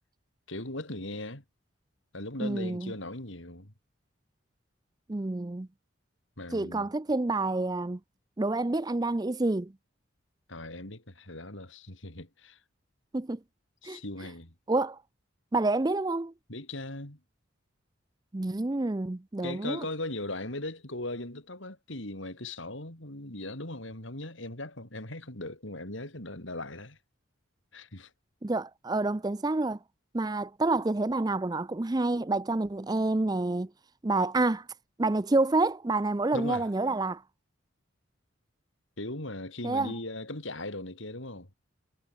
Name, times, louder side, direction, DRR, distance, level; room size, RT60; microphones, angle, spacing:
voice 1, 0.5-1.4 2.1-3.7 6.4-6.9 10.5-12.6 13.8-14.5 16.5-17.2 19.4-27.0 27.7-28.1 36.3-36.7 39.0-41.5, left 2 dB, 70° left, 4.7 m, -39 dB
voice 2, 2.4-2.9 5.1-5.7 6.5-8.0 8.4-9.7 13.1-13.4 13.8-14.0 14.7-15.0 15.5-16.3 18.3-19.9 28.4-29.8 30.1-33.7 34.0-34.7 35.0-37.2 39.6-39.9, right 2 dB, 20° right, 0.4 m, -28 dB
head